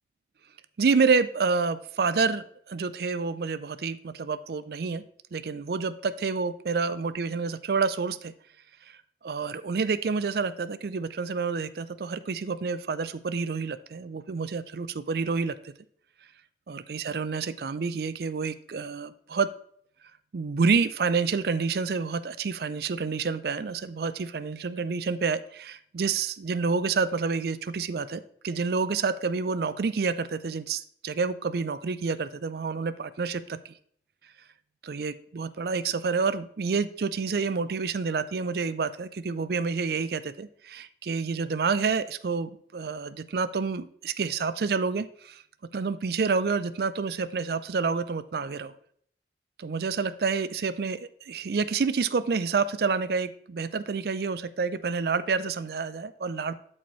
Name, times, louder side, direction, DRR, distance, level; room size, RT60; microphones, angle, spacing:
voice 1, 0.8-5.0 5.3-8.3 9.2-15.6 16.7-19.5 20.3-33.7 34.8-45.4 45.7-48.7 49.6-56.6, right 5 dB, 60° right, 14 dB, 0.4 m, -28 dB
12.5 x 4.3 x 3.1 m, 0.63 s
head